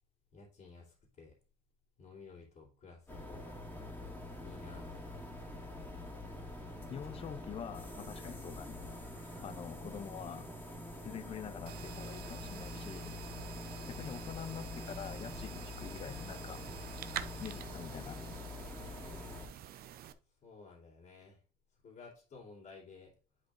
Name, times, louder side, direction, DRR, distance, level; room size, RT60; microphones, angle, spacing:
voice 1, 0.3-1.3 2.0-3.6 4.4-5.1 9.9-10.0 20.4-21.4 21.8-23.1, left 4 dB, 55° left, 3.0 m, -54 dB
sound 1, 3.1-19.5, left 2 dB, 10° left, 2.4 m, -45 dB
sound 2, 4.0-10.0, right 1 dB, 20° right, 2.1 m, -59 dB
voice 2, 6.9-8.8 9.4-10.5 11.0-13.2 13.9-16.6 17.4-18.2, left 8 dB, 35° left, 0.5 m, -45 dB
sound 3, 11.7-20.1, right 11 dB, 65° right, 0.6 m, -48 dB
10.5 x 5.0 x 2.5 m
cardioid pair, 110°, 17 cm